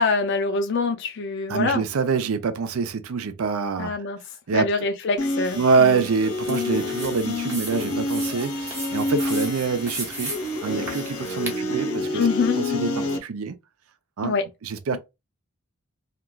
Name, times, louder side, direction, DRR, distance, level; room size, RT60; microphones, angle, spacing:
voice 1, 0.0-1.8 3.8-4.2 4.5-6.1 12.1-12.6 14.2-14.4, left 4 dB, 55° left, 0.4 m, -24 dB
voice 2, 1.5-3.9 4.5-4.7 5.6-12.2 12.6-13.6 14.2-14.3 14.6-15.0, right 5 dB, 75° right, 0.5 m, -25 dB
sound 1, 5.2-13.2, left 2 dB, 90° left, 0.7 m, -28 dB
sound 2, 5.4-11.6, right 2 dB, 10° right, 0.8 m, -37 dB
2.9 x 2.4 x 2.2 m
head